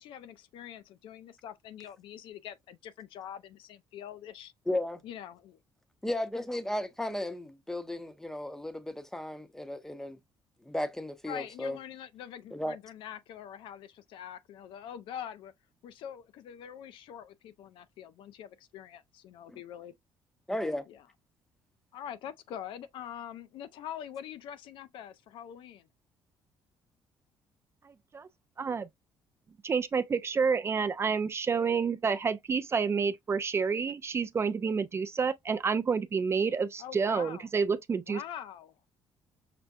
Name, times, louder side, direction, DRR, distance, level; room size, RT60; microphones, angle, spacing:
voice 1, 0.0-4.5 5.0-5.6 11.3-15.5 15.8-19.9 20.9-21.1 21.9-25.9 36.8-37.5 38.1-38.7, left 10 dB, 75° left, 0.4 m, -44 dB
voice 2, 4.7-5.0 6.0-10.2 10.7-11.8 12.5-12.8 19.5-19.6 20.5-20.8, left 1 dB, 5° left, 0.7 m, -34 dB
voice 3, 28.6-28.9 29.6-38.2, right 5 dB, 30° right, 0.3 m, -29 dB
5.8 x 2.2 x 2.6 m
cardioid pair, 100°, 9 cm